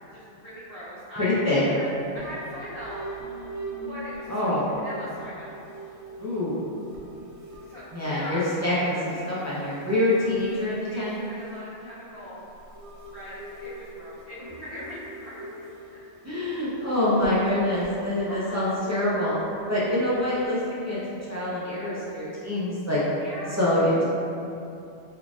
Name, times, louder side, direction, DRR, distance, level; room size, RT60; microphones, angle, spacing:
voice 1, 0.1-1.9 2.1-3.0 3.9-5.6 7.7-9.4 10.4-12.4 13.1-15.7 15.9-16.1 18.2-18.6 23.2-23.6, left 1 dB, 55° left, -13 dB, 0.9 m, -40 dB
voice 2, 1.2-1.6 4.3-4.7 6.2-6.6 7.9-11.2 16.2-19.4 19.7-21.0 21.3-23.0 23.6-24.0, left 1 dB, 20° right, -10 dB, 0.4 m, -25 dB
sound 1, 1.9-20.5, right 2 dB, 80° right, 1.1 m, -43 dB
4.0 x 3.2 x 2.4 m, 2.7 s
omnidirectional pair, 1.3 m